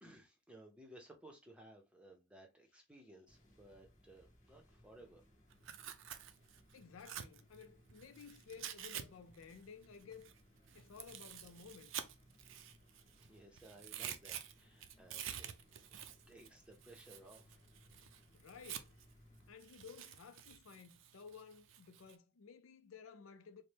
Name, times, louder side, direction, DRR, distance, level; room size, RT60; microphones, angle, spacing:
voice 1, 0.0-5.2 13.2-15.5 15.9-17.6, right 1 dB, 5° right, 0.7 m, -59 dB
sound 1, 3.3-19.5, left 1 dB, 40° left, 1.0 m, -66 dB
Tearing, 5.5-9.0 9.3-13.3 13.6-19.1 19.6-22.1, right 9 dB, 75° right, 0.4 m, -49 dB
voice 2, 6.7-10.3 10.7-12.1 18.3-19.1 19.5-23.6, left 6 dB, 85° left, 0.5 m, -55 dB
4.1 x 2.1 x 3.3 m
head